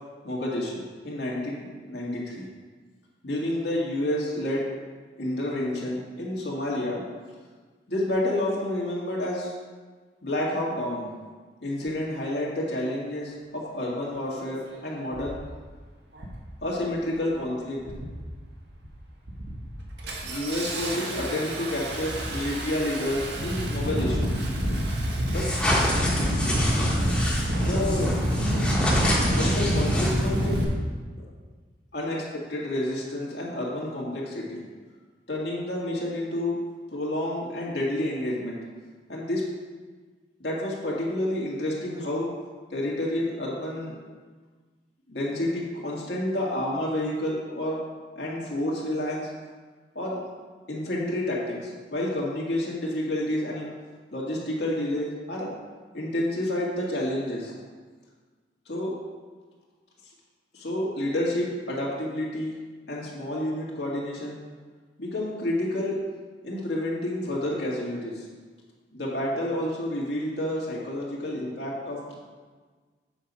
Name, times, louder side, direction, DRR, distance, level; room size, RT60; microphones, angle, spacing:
voice 1, 0.2-2.5 3.2-4.7 5.2-7.0 7.9-9.5 10.2-11.1 11.6-15.4 16.6-17.8 20.2-24.3 25.3-25.5 27.6-28.2 29.3-30.6 31.9-34.6 35.3-36.6 36.9-38.6 39.1-39.4 40.4-42.3 42.7-44.0 45.1-47.8 48.2-49.3 50.0-50.2 50.7-53.7 54.1-55.5 55.9-57.5 58.7-58.9 60.5-62.6 62.9-64.4 65.0-66.0 66.4-68.3 68.9-72.2, left 1 dB, 70° left, -4 dB, 2.0 m, -29 dB
Engine starting, 14.3-14.4 15.1-15.4 16.1-16.5 16.8-17.4 17.8-18.3 18.7-18.9 19.3-30.6, equal, 70° right, 1.4 m, -27 dB
sound 1, 25.3-30.5, left 1 dB, 5° left, 1.4 m, -28 dB
7.9 x 5.6 x 5.4 m, 1.4 s
head